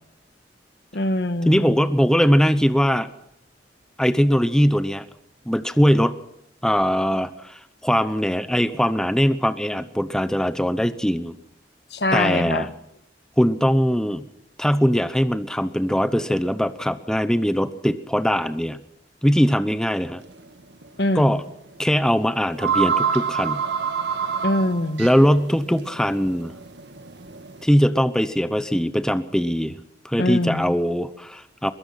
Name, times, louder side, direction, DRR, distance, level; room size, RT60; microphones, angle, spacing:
voice 1, 0.9-1.7 11.9-12.7 21.0-21.4 24.4-25.1 30.2-30.7, left 1 dB, 70° left, 11 dB, 1.4 m, -23 dB
voice 2, 1.5-3.1 4.0-5.0 5.5-6.1 6.6-11.3 12.1-12.7 13.4-14.2 14.6-18.8 19.2-20.2 21.1-21.4 21.8-23.6 25.0-26.5 27.6-29.8 30.0-31.7, equal, 5° left, 12 dB, 0.8 m, -21 dB
sound 1, 20.2-20.5 20.8-20.9 22.0-22.1 22.4-27.6, right 6 dB, 75° right, 1.6 m, -27 dB
22.5 x 22.5 x 5.8 m, 0.77 s
head